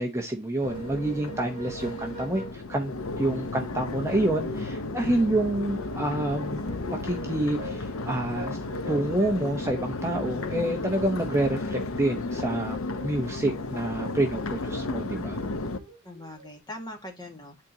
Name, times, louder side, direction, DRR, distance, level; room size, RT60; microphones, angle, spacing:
voice 1, 0.0-6.6 6.9-8.6 8.9-15.4, right 1 dB, 15° right, 0.8 m, -28 dB
Crowd, 0.6-15.8, left 2 dB, 80° left, 0.8 m, -33 dB
sound 1, 0.6-2.5 4.8-7.3 7.6-9.4 10.3-11.1 11.4-14.1 15.0-16.6, right 2 dB, 50° right, 2.9 m, -44 dB
voice 2, 16.0-17.7, left 1 dB, 20° left, 1.8 m, -42 dB
10.5 x 4.4 x 2.8 m
head